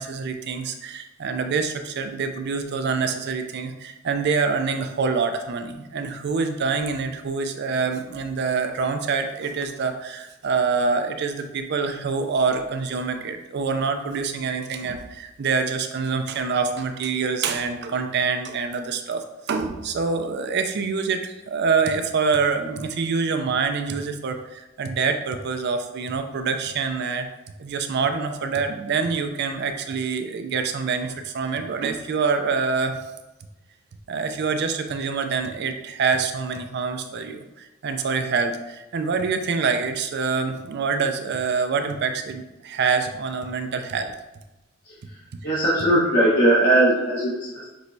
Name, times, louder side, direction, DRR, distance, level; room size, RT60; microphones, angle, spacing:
voice 1, 0.0-27.3 27.6-33.0 34.1-44.1 45.5-45.6, right 5 dB, 55° right, 7 dB, 0.4 m, -26 dB
voice 2, 45.4-47.7, right 1 dB, 60° left, -9 dB, 1.1 m, -20 dB
6.2 x 3.1 x 2.6 m, 1.0 s
head